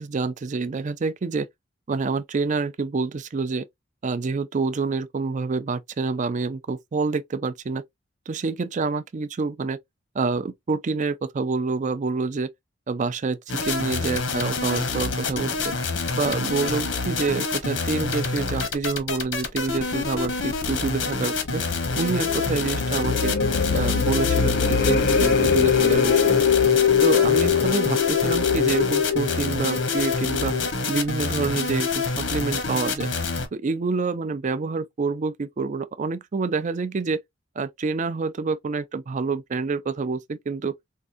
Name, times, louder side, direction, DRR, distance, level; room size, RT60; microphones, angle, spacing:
voice 1, 0.0-1.5 1.9-3.7 4.0-7.8 8.3-9.8 10.1-12.5 12.9-15.7 16.1-21.6 21.9-23.3 23.7-26.4 27.0-30.5 30.9-33.1 33.5-37.2 37.6-40.7, right 4 dB, 40° right, 0.4 m, -27 dB
sound 1, 13.5-33.5, left 4 dB, 85° left, 1.1 m, -27 dB
sound 2, 20.4-30.7, left 7 dB, 60° left, 0.6 m, -23 dB
4.5 x 2.5 x 2.4 m
head